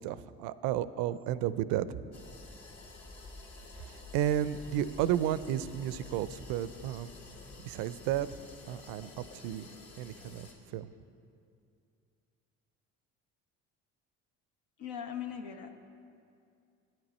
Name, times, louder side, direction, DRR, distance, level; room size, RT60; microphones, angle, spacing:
voice 1, 0.0-1.8 3.8-7.1 7.6-8.3 8.7-9.7 10.0-10.9, right 11 dB, 75° right, 15 dB, 0.5 m, -32 dB
sound 1, 2.1-10.5, left 3 dB, 60° left, 2.1 m, -50 dB
voice 2, 14.8-15.8, left 8 dB, 85° left, 5 dB, 0.9 m, -39 dB
10.5 x 9.1 x 4.2 m, 2.4 s
supercardioid pair, 70°, 35 cm